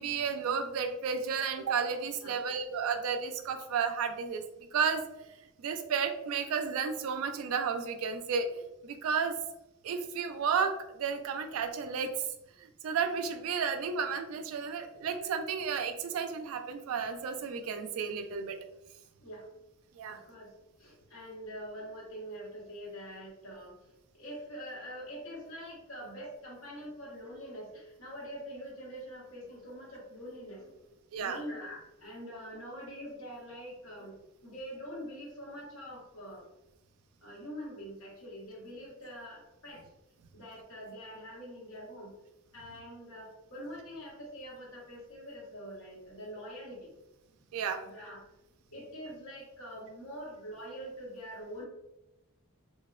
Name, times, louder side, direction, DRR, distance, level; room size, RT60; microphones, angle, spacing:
voice 1, 0.0-4.4 4.7-5.0 5.6-9.3 9.8-12.1 12.6-18.6 20.0-20.2 31.1-31.4 47.5-47.8, right 6 dB, 75° right, 7 dB, 0.3 m, -32 dB
voice 2, 19.2-19.5 20.1-30.8 31.2-36.5 37.2-39.9 40.3-42.1 42.5-46.9 47.8-48.2 48.7-51.7, equal, 70° left, -4 dB, 0.8 m, -44 dB
2.7 x 2.0 x 2.2 m, 0.91 s
head